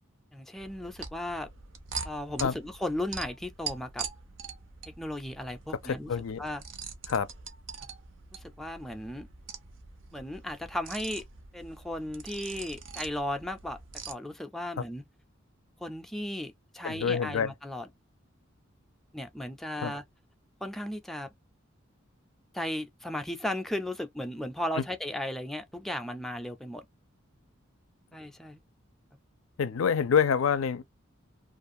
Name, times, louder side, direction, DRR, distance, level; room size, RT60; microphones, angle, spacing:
voice 1, 0.3-1.5 2.0-4.1 4.9-6.1 6.4-6.6 8.3-9.3 10.1-11.2 11.5-13.8 14.1-15.0 15.8-17.9 19.1-20.0 20.6-21.3 22.5-26.8 28.1-28.6, left 1 dB, ahead, 0.3 m, -35 dB
sound 1, 0.6-14.1, right 5 dB, 65° right, 0.6 m, -43 dB
voice 2, 5.8-6.4 7.1-7.3 16.8-17.5 19.8-19.9 24.8-24.9 29.6-30.8, left 6 dB, 80° left, 0.4 m, -26 dB
2.4 x 2.3 x 2.6 m
head